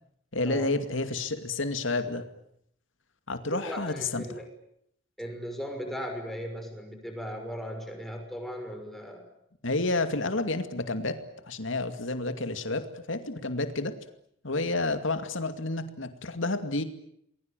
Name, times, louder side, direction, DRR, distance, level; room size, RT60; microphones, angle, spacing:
voice 1, 0.3-2.2 3.3-4.4 9.6-11.2 11.5-13.9 14.4-16.8, left 2 dB, 75° left, 9 dB, 2.4 m, -30 dB
voice 2, 3.5-4.5 5.2-9.3, equal, ahead, 4 dB, 6.2 m, -37 dB
29.0 x 22.0 x 9.1 m, 0.73 s
head